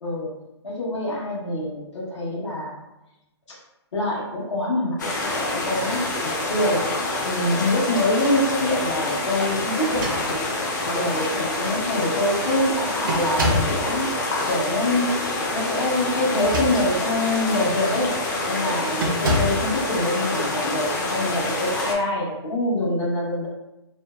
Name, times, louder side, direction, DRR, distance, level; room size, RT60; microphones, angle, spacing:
voice 1, 0.0-0.3 0.6-2.8 3.5-3.6 3.9-10.4 10.8-14.1 14.5-15.2 15.5-18.2 18.5-23.5, left 1 dB, 90° left, -6 dB, 1.0 m, -25 dB
sound 1, 5.0-22.0, left 2 dB, 40° left, 0.4 m, -27 dB
sound 2, 9.8-10.7 11.6-11.7 12.0-12.4 13.1-13.8 16.2-17.1 17.7-17.9 19.0-19.7, equal, 45° right, 0.4 m, -27 dB
2.6 x 2.1 x 2.3 m, 0.91 s
hypercardioid pair, 175°, 15 cm